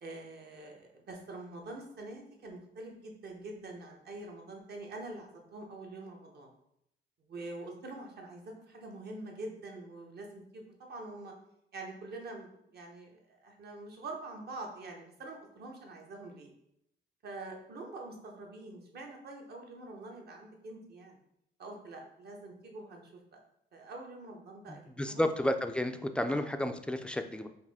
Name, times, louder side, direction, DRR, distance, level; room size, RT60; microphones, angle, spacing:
voice 1, 0.0-6.5 7.3-11.3 11.7-16.5 17.2-21.2 21.6-23.4 23.7-25.3 26.3-26.4, right 2 dB, 55° right, 1 dB, 1.0 m, -45 dB
voice 2, 24.7-27.5, left 1 dB, 5° left, 7 dB, 0.3 m, -32 dB
4.7 x 2.5 x 3.5 m, 0.77 s
cardioid pair, 90°, 20 cm